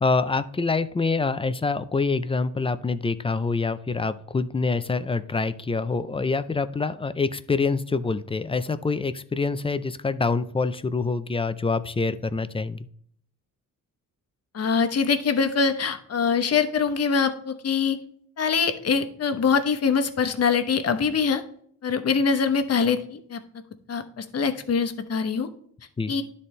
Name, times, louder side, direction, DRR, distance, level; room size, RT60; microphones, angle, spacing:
voice 1, 0.0-12.9 26.0-26.1, left 4 dB, 15° left, 12 dB, 0.4 m, -26 dB
voice 2, 14.5-18.0 18.4-21.4 21.8-23.4 23.9-25.5 26.1-26.2, left 5 dB, 45° left, 8 dB, 0.9 m, -23 dB
12.0 x 4.2 x 3.2 m, 0.62 s
wide cardioid pair, 125°, 33 cm